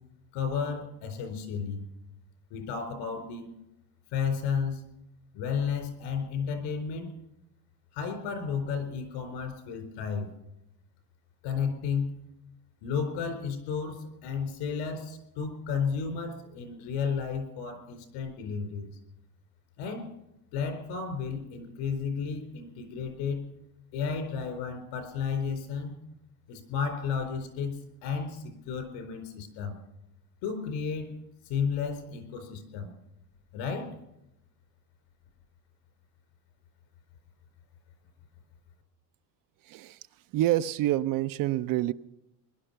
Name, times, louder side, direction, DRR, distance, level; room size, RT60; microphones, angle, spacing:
voice 1, 0.3-1.9 2.5-3.5 4.1-4.8 5.3-7.1 7.9-10.3 11.4-12.2 12.8-18.9 19.8-20.1 20.5-23.4 23.9-26.0 26.5-29.8 30.4-31.2 31.5-32.9 33.5-33.9, left 6 dB, 75° left, 4.5 m, -32 dB
voice 2, 39.6-40.0 40.3-41.9, right 14 dB, 45° right, 0.5 m, -27 dB
21.0 x 11.5 x 5.7 m
cardioid pair, 135°, 46 cm